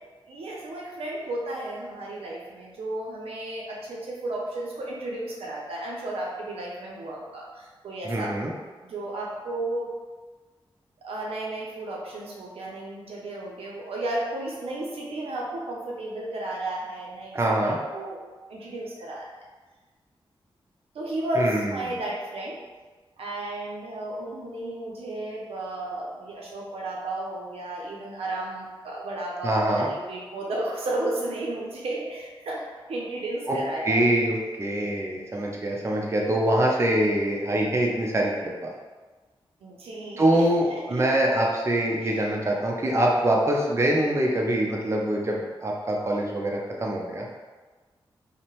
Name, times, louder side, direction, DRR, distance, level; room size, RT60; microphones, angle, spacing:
voice 1, 0.3-8.3 8.8-9.9 11.0-18.2 18.5-19.2 20.9-22.6 23.2-34.1 39.6-41.1 42.0-42.2, right 1 dB, 90° right, -3 dB, 0.5 m, -33 dB
voice 2, 8.0-8.5 17.3-17.8 21.4-21.6 29.4-29.9 33.5-33.6 33.8-38.5 40.2-47.3, right 1 dB, 30° right, -2 dB, 0.5 m, -24 dB
2.7 x 2.0 x 2.9 m, 1.3 s
cardioid pair, 55°, 10 cm